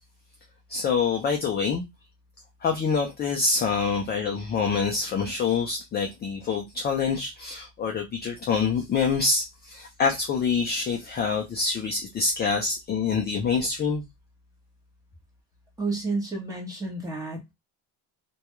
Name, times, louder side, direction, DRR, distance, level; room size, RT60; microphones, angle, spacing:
voice 1, 0.7-1.8 2.6-14.0, left 5 dB, 25° left, 0.3 m, -26 dB
voice 2, 15.8-17.4, right 3 dB, 10° right, 0.8 m, -30 dB
2.3 x 2.2 x 2.9 m
cardioid pair, 135°, 44 cm